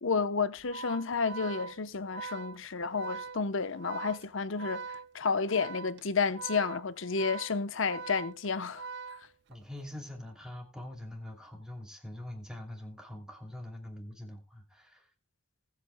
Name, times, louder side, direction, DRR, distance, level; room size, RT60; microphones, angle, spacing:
voice 1, 0.0-4.8 5.1-8.9, left 5 dB, 65° left, 0.8 m, -31 dB
Organ, 0.6-9.8, right 5 dB, 55° right, 0.6 m, -43 dB
voice 2, 9.5-15.1, left 1 dB, 5° right, 2.7 m, -44 dB
20.0 x 8.4 x 2.2 m
head